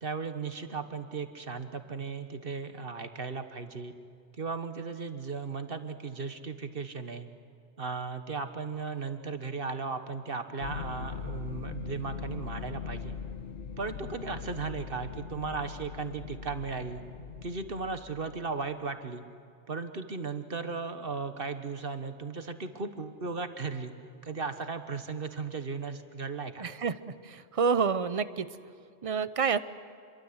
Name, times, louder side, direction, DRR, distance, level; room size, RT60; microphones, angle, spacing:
voice 1, 0.0-3.9 4.4-7.3 7.8-13.2 13.8-17.0 17.4-19.2 19.7-23.9 24.2-26.7, right 4 dB, 50° right, 8 dB, 1.5 m, -36 dB
sound 1, 10.6-18.5, left 6 dB, 75° left, 1.4 m, -41 dB
voice 2, 26.6-28.5 29.0-29.6, right 5 dB, 35° right, 14 dB, 0.7 m, -28 dB
27.5 x 23.0 x 8.0 m, 2.4 s
omnidirectional pair, 1.2 m